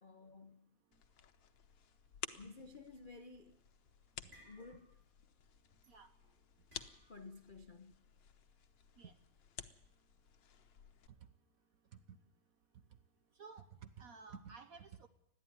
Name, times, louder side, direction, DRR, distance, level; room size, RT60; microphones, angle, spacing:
voice 1, 0.0-0.7 2.3-3.6 4.3-5.0 6.2-6.3 7.1-7.9, left 3 dB, 45° left, 0.6 m, -54 dB
sound 1, 0.9-11.1, left 9 dB, 65° left, 1.6 m, -54 dB
sound 2, 4.3-5.1 5.4-5.7 6.7-7.4, equal, 25° right, 7.4 m, -64 dB
voice 2, 13.4-15.1, right 5 dB, 55° right, 1.1 m, -53 dB
20.5 x 14.0 x 9.7 m
omnidirectional pair, 2.3 m